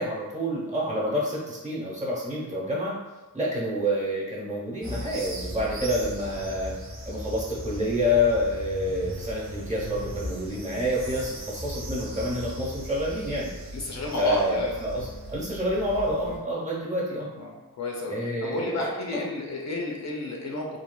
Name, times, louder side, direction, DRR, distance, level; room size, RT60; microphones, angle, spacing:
voice 1, 0.0-2.9 3.3-6.7 7.1-13.5 14.2-17.3 18.1-19.2, equal, 20° right, -5 dB, 1.0 m, -28 dB
sound 1, 4.8-16.4, equal, 40° right, 0.7 m, -38 dB
voice 2, 13.7-14.7 16.2-16.4 17.4-18.1 18.4-20.8, left 2 dB, 55° left, -1 dB, 0.5 m, -31 dB
3.1 x 2.4 x 2.2 m, 1.2 s
cardioid pair, 80°, 33 cm